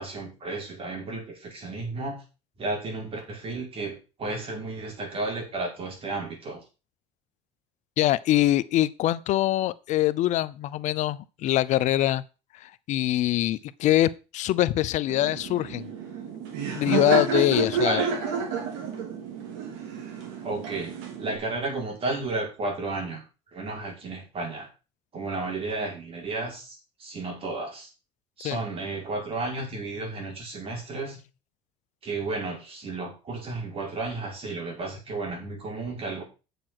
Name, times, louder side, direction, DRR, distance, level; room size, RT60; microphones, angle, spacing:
voice 1, 0.0-2.2 2.6-6.6 17.8-18.1 20.4-23.2 23.5-24.7 25.1-27.9 28.4-31.2 32.0-36.2, right 2 dB, 40° right, 5.8 m, -33 dB
voice 2, 8.0-12.2 12.6-15.9 16.7-18.0 28.4-28.6, left 14 dB, 60° left, 0.7 m, -24 dB
Laughter, 15.1-21.4, right 6 dB, 80° right, 3.3 m, -30 dB
8.9 x 6.9 x 5.8 m
supercardioid pair, 80°, 14 cm